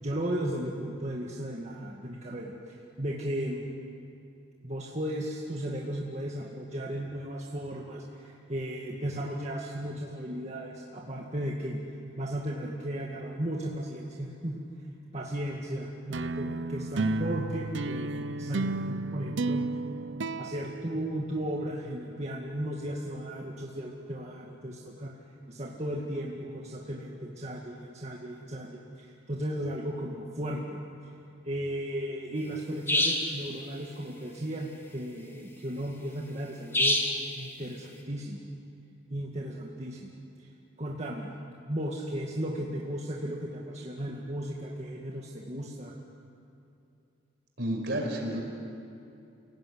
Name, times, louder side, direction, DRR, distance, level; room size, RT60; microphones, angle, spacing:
voice 1, 0.0-3.6 4.6-14.7 15.1-19.6 20.4-25.1 25.5-30.8 31.4-37.0 37.4-38.4 39.1-40.1 40.4-40.5 40.8-41.3 41.6-45.9, right 1 dB, 35° right, -2 dB, 2.1 m, -35 dB
sound 1, 16.1-21.7, right 3 dB, 80° right, 0.7 m, -33 dB
sound 2, 32.9-33.3 36.7-37.2, left 1 dB, 15° left, 2.2 m, -25 dB
voice 2, 47.6-48.4, right 1 dB, 65° right, 1 dB, 5.3 m, -30 dB
29.0 x 18.0 x 9.7 m, 2.7 s
head